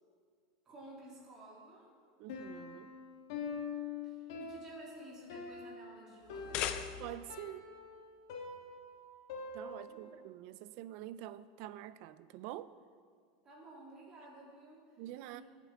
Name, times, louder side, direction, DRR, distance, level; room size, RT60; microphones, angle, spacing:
voice 1, 0.6-1.9 4.0-6.7 9.7-10.2 13.4-14.8 15.3-15.4, right 1 dB, 20° right, 2.9 m, -53 dB
voice 2, 2.2-2.9 7.0-7.7 9.5-12.7 15.0-15.4, right 13 dB, 45° right, 0.4 m, -46 dB
Piano, 2.3-10.1, left 5 dB, 75° left, 1.7 m, -45 dB
sound 1, 6.2-7.4, left 11 dB, 40° left, 0.5 m, -39 dB
19.0 x 8.3 x 3.6 m
supercardioid pair, 165°, 2 cm